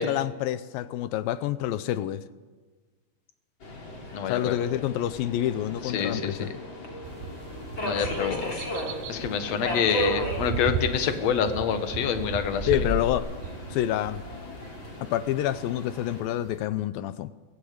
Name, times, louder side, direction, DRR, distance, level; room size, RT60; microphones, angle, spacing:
voice 1, 0.0-2.2 4.3-6.5 12.7-13.3 13.7-14.2 15.0-17.3, left 12 dB, 80° left, 2.4 m, -28 dB
Subway metro underground, 3.6-16.2, equal, 30° left, 3.9 m, -37 dB
voice 2, 4.1-4.6 5.8-6.5 7.8-8.5 9.1-12.7, left 7 dB, 55° left, 2.4 m, -27 dB
sound 1, 5.5-6.5 6.8-7.2 7.5-7.6 8.1-13.1, left 1 dB, 20° right, 2.8 m, -41 dB
sound 2, 7.0-16.6, right 5 dB, 70° right, 2.8 m, -38 dB
23.5 x 15.0 x 8.7 m
omnidirectional pair, 4.3 m